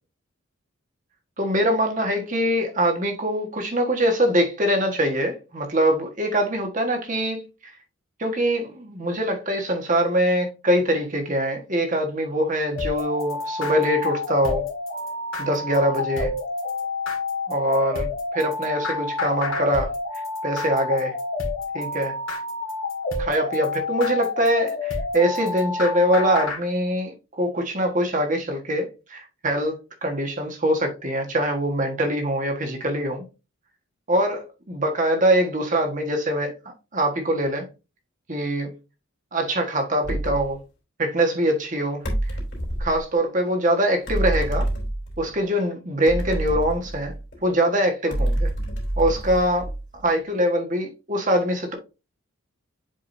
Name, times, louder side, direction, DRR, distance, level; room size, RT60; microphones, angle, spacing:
voice 1, 1.4-7.7 8.2-14.6 15.4-16.3 17.5-21.2 21.7-22.2 23.2-33.3 34.1-36.5 36.9-37.7 38.3-38.7 39.3-40.6 41.0-42.0 42.8-44.7 45.2-47.1 47.4-48.5 49.0-51.7, right 1 dB, 35° right, 1.5 m, -23 dB
sound 1, 12.7-26.6, left 3 dB, 70° left, 2.0 m, -29 dB
sound 2, 40.0-40.5 42.0-43.0 44.1-45.3 46.1-47.4 48.1-50.0, right 1 dB, 50° left, 3.1 m, -27 dB
7.6 x 5.0 x 2.7 m
head